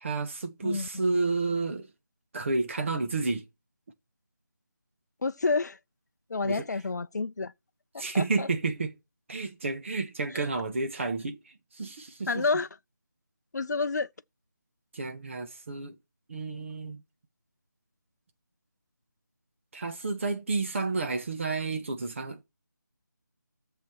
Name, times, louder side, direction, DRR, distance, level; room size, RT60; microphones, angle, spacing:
voice 1, 0.0-1.9 2.3-3.5 6.4-6.7 8.0-8.9 9.3-11.4 11.7-12.4 14.9-16.0 16.3-17.0 19.7-22.4, right 3 dB, 40° right, 1.6 m, -30 dB
voice 2, 5.2-5.8 6.3-7.5 7.9-8.5 10.3-10.5 12.3-12.7 13.5-14.1, left 4 dB, 60° left, 0.6 m, -29 dB
14.0 x 7.3 x 4.6 m
figure-of-eight pair, 165°, 10 cm